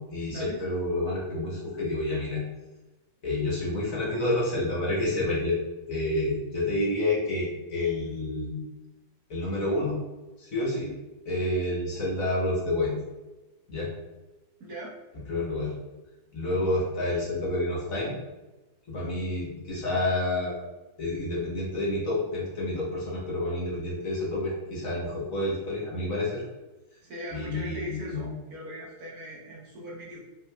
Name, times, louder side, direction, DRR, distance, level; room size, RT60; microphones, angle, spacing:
voice 1, 0.0-2.4 3.2-5.6 5.9-8.5 9.3-10.0 10.4-10.9 11.2-12.9 13.7-13.9 15.3-15.7 16.3-18.1 18.9-20.5 21.0-26.4 27.3-28.3, left 1 dB, 50° left, -5 dB, 1.3 m, -29 dB
voice 2, 14.6-15.0 27.0-30.2, equal, 60° right, -4 dB, 1.3 m, -40 dB
5.0 x 3.2 x 2.3 m, 1.1 s
omnidirectional pair, 2.0 m